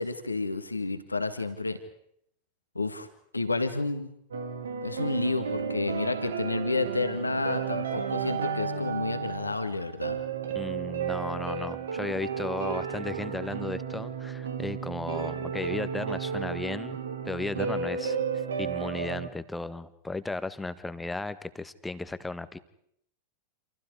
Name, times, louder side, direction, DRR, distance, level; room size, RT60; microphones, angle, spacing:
voice 1, 0.0-1.8 2.8-3.1 3.3-4.1 4.8-10.2, left 3 dB, 80° left, 8 dB, 1.9 m, -30 dB
sound 1, 4.3-19.3, right 6 dB, 65° right, 2.2 m, -33 dB
voice 2, 10.5-17.0 17.2-18.2 18.6-22.6, left 2 dB, 5° left, 13 dB, 1.5 m, -35 dB
29.0 x 27.5 x 4.9 m, 0.71 s
figure-of-eight pair, 90°, 0 cm